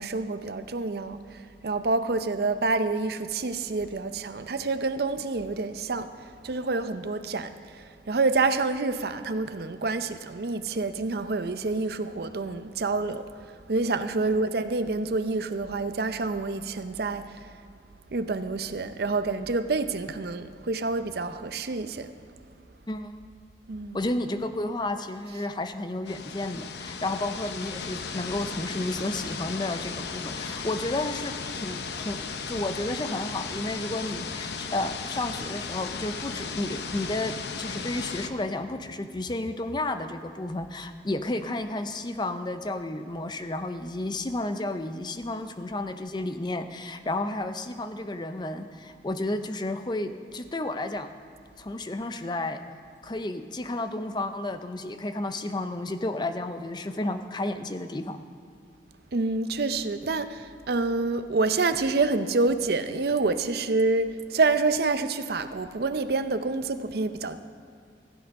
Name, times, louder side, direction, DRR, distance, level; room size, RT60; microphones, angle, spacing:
voice 1, 0.0-17.5 18.1-22.1 23.7-24.1 25.3-25.5 59.1-67.4, right 3 dB, 60° right, 0.6 m, -28 dB
voice 2, 22.9-23.2 23.9-32.2 32.5-51.2 51.6-52.6 53.0-58.2, left 2 dB, 25° left, 0.5 m, -32 dB
sound 1, 26.0-38.3, left 5 dB, 65° left, 0.7 m, -36 dB
15.5 x 8.3 x 5.3 m
head